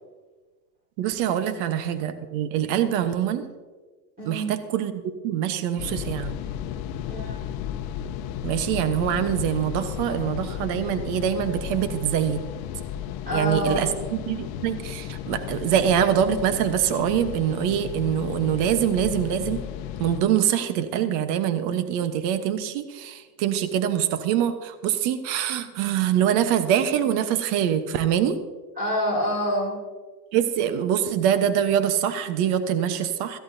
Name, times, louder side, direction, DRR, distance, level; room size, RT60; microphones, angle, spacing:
voice 1, 1.0-3.5 4.2-6.3 8.4-12.4 13.3-19.6 20.0-28.4 30.3-33.4, right 9 dB, 50° right, 10 dB, 1.2 m, -24 dB
voice 2, 4.2-4.5 7.1-7.4 13.3-13.9 28.8-29.8, equal, 15° right, -5 dB, 4.5 m, -26 dB
sound 1, 5.8-20.2, left 10 dB, 45° left, 0.9 m, -34 dB
16.5 x 14.5 x 2.8 m, 1.4 s
supercardioid pair, 120°, 50 cm